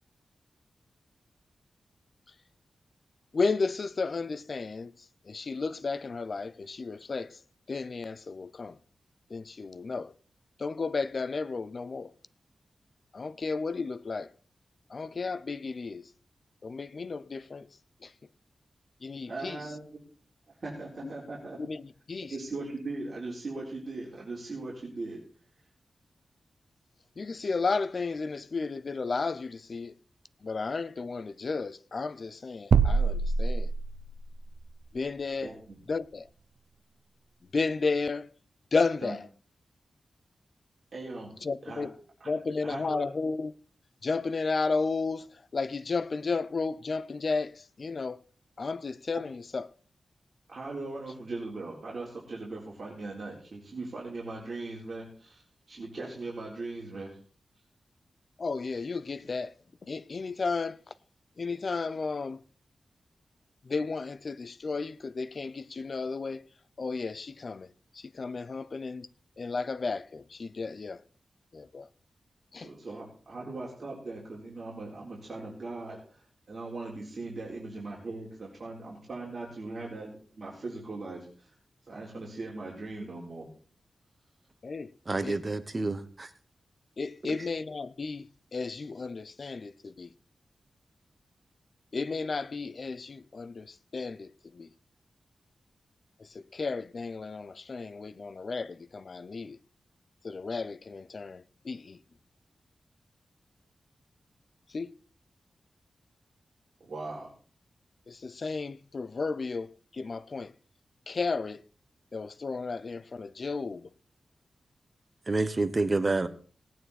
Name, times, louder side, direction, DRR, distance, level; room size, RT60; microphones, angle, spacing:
voice 1, 3.3-4.9 5.3-7.4 7.7-8.8 9.3-10.1 10.6-12.1 13.1-14.3 14.9-16.1 16.6-17.7 18.0-18.1 19.0-19.6 21.0-21.1 21.6-22.3 27.2-29.9 30.4-33.7 34.9-35.5 35.9-36.3 37.5-38.3 38.7-39.3 41.4-41.9 42.3-43.5 44.0-48.2 48.6-49.7 58.4-59.5 59.8-60.8 61.4-62.4 63.6-66.4 66.8-67.7 67.9-69.1 69.4-71.0 71.5-71.9 72.5-72.7 84.6-84.9 85.2-85.4 87.0-90.1 91.9-94.7 96.2-99.6 100.2-102.0 104.7-105.0 108.1-110.5 111.1-111.6 112.1-113.9, left 4 dB, 50° left, 0.6 m, -33 dB
voice 2, 19.3-19.8 20.6-21.6 22.3-25.2 35.4-35.8 39.0-39.1 40.9-41.4 41.7-41.9 42.2-42.3 42.6-43.1 50.5-55.4 55.7-57.2 72.6-81.5 81.9-83.5 106.8-107.3, right 3 dB, 50° right, 3.8 m, -39 dB
sound 1, 32.7-34.3, right 5 dB, 85° right, 0.7 m, -24 dB
voice 3, 85.1-86.3 115.3-116.3, right 3 dB, 30° right, 1.1 m, -28 dB
18.0 x 9.1 x 4.2 m
wide cardioid pair, 110°, 0 cm